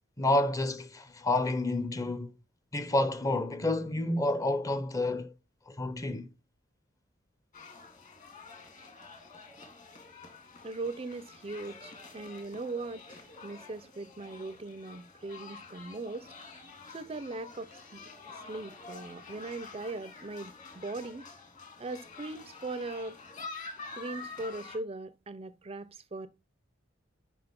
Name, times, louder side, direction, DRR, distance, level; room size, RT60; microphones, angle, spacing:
voice 1, 0.2-2.3 2.7-5.3 5.7-6.3, left 2 dB, 20° left, 0.6 m, -29 dB
sound 1, 7.5-24.8, left 4 dB, 40° left, 1.9 m, -48 dB
voice 2, 10.6-16.3 16.9-18.0 18.3-21.3 21.8-23.2 24.0-26.3, right 3 dB, 30° right, 0.5 m, -40 dB
5.8 x 5.1 x 5.1 m
head